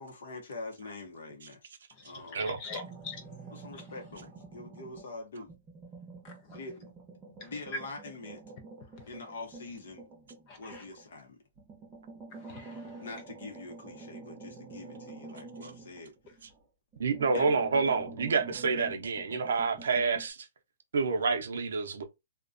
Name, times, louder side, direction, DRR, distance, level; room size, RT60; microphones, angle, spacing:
voice 1, 0.0-1.7 2.0-2.5 3.5-5.5 6.5-6.9 7.4-8.4 9.1-10.0 10.6-11.4 13.0-16.1 17.3-17.5, left 3 dB, 60° left, 0.7 m, -44 dB
voice 2, 2.1-3.2 6.2-6.3 7.4-7.5 10.5-10.8 12.3-12.9, left 4 dB, 25° left, 0.4 m, -44 dB
sound 1, 2.7-5.2 5.5-11.1 11.6-16.6 16.9-20.3, right 3 dB, 15° right, 0.6 m, -48 dB
voice 3, 17.0-20.5 20.9-22.0, right 4 dB, 70° right, 0.6 m, -28 dB
2.4 x 2.2 x 2.4 m
hypercardioid pair, 180°, 0 cm